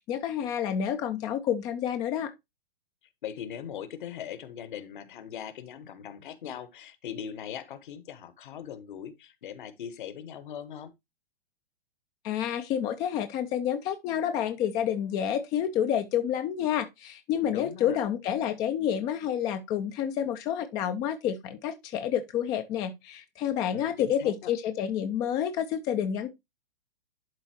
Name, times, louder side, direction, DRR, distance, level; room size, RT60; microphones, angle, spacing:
voice 1, 0.1-2.3 12.2-26.3, left 9 dB, 15° left, 0.3 m, -29 dB
voice 2, 3.2-10.9 17.4-18.0 23.7-24.5, left 9 dB, 55° left, 1.1 m, -40 dB
11.0 x 4.0 x 2.8 m
figure-of-eight pair, 115°, 30 cm